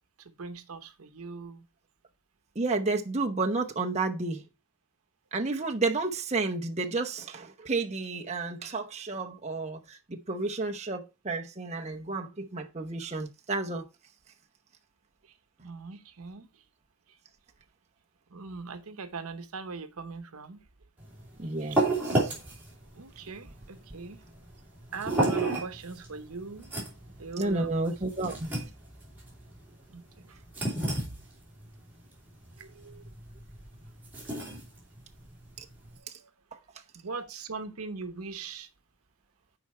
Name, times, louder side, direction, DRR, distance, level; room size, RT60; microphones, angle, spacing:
voice 1, 0.2-1.6 15.6-16.5 18.3-20.6 21.4-21.8 22.9-24.2 24.9-26.7 27.2-27.9 29.9-30.4 32.6-33.1 36.0-36.3 37.0-38.7, right 4 dB, 80° right, 0.9 m, -41 dB
voice 2, 2.6-4.4 5.3-13.9 21.4-21.8 22.2-22.3 27.4-28.5 35.6-35.7, right 3 dB, 30° right, 0.8 m, -31 dB
sound 1, 21.0-36.0, right 2 dB, 10° right, 3.1 m, -33 dB
7.9 x 4.9 x 4.2 m
head